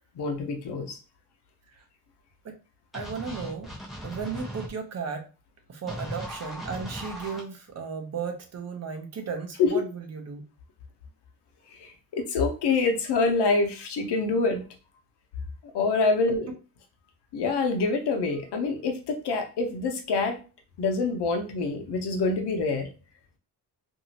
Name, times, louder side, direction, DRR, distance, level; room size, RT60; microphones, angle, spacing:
voice 1, 0.2-1.0 9.6-9.7 11.7-14.7 15.7-16.5 17.3-20.4 20.8-22.9, left 3 dB, 90° left, 4 dB, 0.8 m, -26 dB
sound 1, 2.9-4.7 5.9-7.4, equal, ahead, 1.0 m, -38 dB
voice 2, 2.9-3.7 4.0-5.2 5.7-10.4, right 5 dB, 40° right, 5 dB, 0.7 m, -35 dB
2.9 x 2.7 x 2.8 m, 0.34 s
wide cardioid pair, 145°, 39 cm